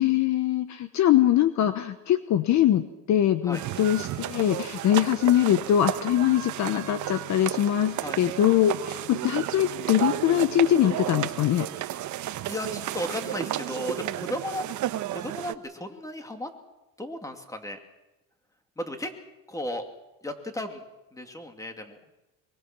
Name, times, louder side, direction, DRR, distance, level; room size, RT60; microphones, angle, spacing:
voice 1, 0.0-11.7, left 11 dB, 45° left, 11 dB, 1.0 m, -23 dB
sound 1, 3.5-15.5, right 13 dB, 50° right, 1.0 m, -33 dB
voice 2, 11.7-12.1 12.4-14.7 15.1-16.5 17.0-17.8 18.8-19.1 19.5-19.8 20.2-20.8 21.1-22.0, left 1 dB, 10° left, 5 dB, 2.6 m, -35 dB
23.5 x 22.5 x 6.1 m, 1.0 s
cardioid pair, 125°, 38 cm